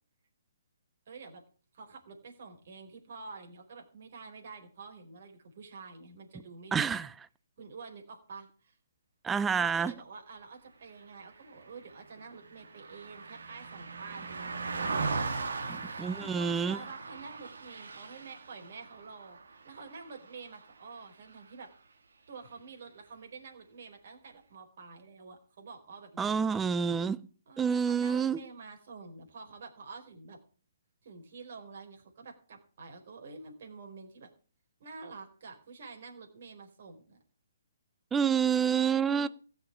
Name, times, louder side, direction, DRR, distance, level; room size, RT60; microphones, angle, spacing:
voice 1, 1.1-1.4 1.7-7.0 7.6-8.8 9.5-15.1 16.2-21.7 22.3-26.5 27.5-30.4 31.0-34.3 34.8-37.2 38.8-39.3, right 4 dB, 55° right, 4.5 m, -48 dB
voice 2, 6.7-7.1 9.2-9.9 16.0-16.8 26.2-27.3 27.6-28.4 38.1-39.3, right 6 dB, 10° right, 0.5 m, -28 dB
Car passing by, 11.3-20.9 21.3-21.5, right 4 dB, 75° right, 2.5 m, -39 dB
16.0 x 6.6 x 8.4 m
hypercardioid pair, 150°, 0 cm